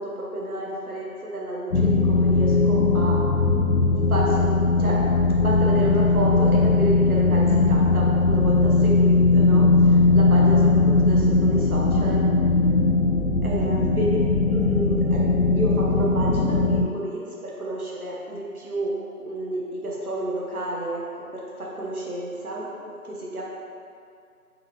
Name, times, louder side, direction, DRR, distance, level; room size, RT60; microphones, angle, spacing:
voice 1, 0.0-3.2 4.1-5.0 5.3-12.2 13.4-15.2 15.5-18.9 19.2-23.4, right 1 dB, 75° right, -4 dB, 1.0 m, -30 dB
sound 1, 1.7-16.9, left 3 dB, 80° left, 0.6 m, -19 dB
3.9 x 3.9 x 2.9 m, 2.3 s
figure-of-eight pair, 175°, 44 cm